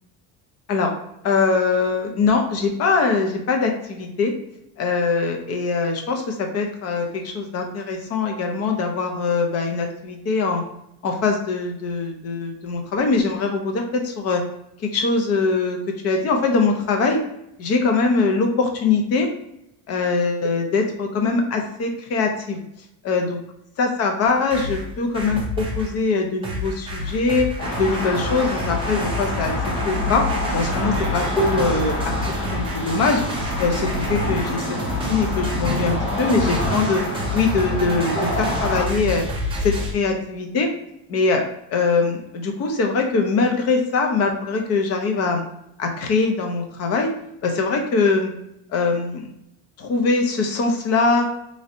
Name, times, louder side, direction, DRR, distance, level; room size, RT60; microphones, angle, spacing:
voice 1, 1.2-4.3 4.8-10.6 11.0-14.4 14.8-15.8 16.0-17.2 17.6-19.3 19.9-22.6 23.0-23.4 23.8-27.5 27.8-29.5 29.8-30.3 30.5-32.1 32.4-33.2 33.6-34.7 35.1-37.0 37.3-39.2 39.6-40.7 41.1-41.4 41.7-45.4 45.8-47.1 47.4-48.3 48.7-49.3 49.8-51.3, left 4 dB, 40° left, 3 dB, 0.5 m, -22 dB
sound 1, 24.2-25.9 26.4-39.9, left 1 dB, 15° right, 0.3 m, -28 dB
sound 2, 27.6-38.9, left 1 dB, 70° left, 1.1 m, -28 dB
sound 3, 31.3-34.2 38.1-40.6, right 2 dB, 5° left, 0.8 m, -33 dB
3.1 x 2.6 x 2.5 m, 0.81 s
cardioid pair, 175°, 42 cm